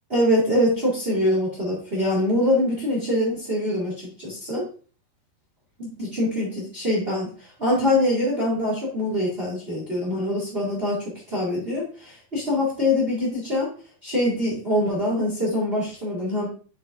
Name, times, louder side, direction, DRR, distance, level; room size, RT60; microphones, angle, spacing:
voice 1, 0.1-4.6 5.8-7.3 7.6-13.7 14.0-16.5, left 1 dB, 65° right, -5 dB, 0.5 m, -24 dB
7.5 x 6.7 x 2.5 m, 0.40 s
omnidirectional pair, 5.5 m